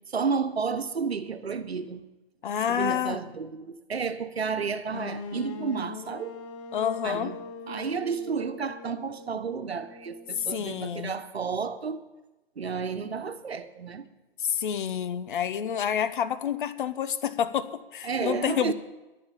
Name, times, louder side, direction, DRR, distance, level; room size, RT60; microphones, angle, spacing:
voice 1, 0.1-2.0 2.7-6.4 7.0-7.4 7.7-12.0 12.6-14.0 18.0-18.7, right 5 dB, 85° right, 1.2 m, -31 dB
voice 2, 2.4-3.2 6.7-7.3 10.4-11.2 14.4-18.7, left 9 dB, 55° left, 1.0 m, -28 dB
sound 1, 4.9-10.8, left 4 dB, 30° left, 1.0 m, -42 dB
11.5 x 7.9 x 8.4 m
hypercardioid pair, 135°, 31 cm